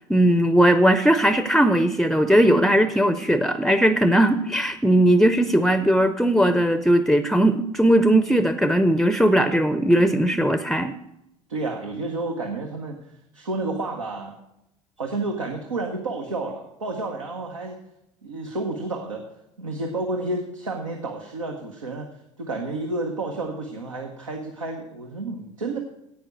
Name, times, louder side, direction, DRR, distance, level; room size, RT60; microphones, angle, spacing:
voice 1, 0.1-10.9, right 1 dB, ahead, 11 dB, 0.6 m, -19 dB
voice 2, 11.5-13.0 13.3-14.3 15.0-17.8 18.2-19.2 19.6-22.1 22.4-25.8, right 2 dB, 85° right, 3 dB, 1.0 m, -30 dB
10.5 x 8.5 x 6.3 m, 0.84 s
figure-of-eight pair, 65°, 16 cm